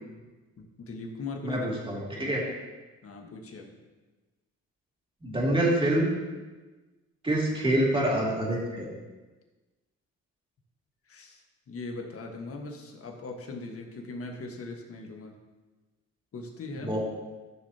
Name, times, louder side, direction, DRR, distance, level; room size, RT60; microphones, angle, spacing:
voice 1, 0.6-1.7 2.1-2.4 3.0-3.8 11.1-15.3 16.3-17.0, left 3 dB, 50° left, 2 dB, 1.5 m, -40 dB
voice 2, 1.4-2.4 5.2-6.1 7.2-8.9 16.8-17.0, right 1 dB, 15° right, -4 dB, 2.8 m, -26 dB
14.0 x 6.4 x 2.9 m, 1.2 s
cardioid pair, 90°, 30 cm